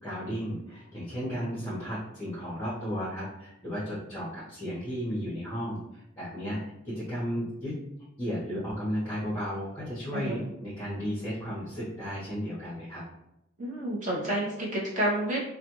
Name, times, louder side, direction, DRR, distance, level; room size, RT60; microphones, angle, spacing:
voice 1, 0.0-6.6 6.8-7.7 8.2-13.0, equal, 15° left, -9 dB, 0.9 m, -34 dB
voice 2, 13.6-15.4, right 1 dB, 35° right, -5 dB, 0.8 m, -29 dB
2.4 x 2.2 x 2.9 m, 0.85 s
head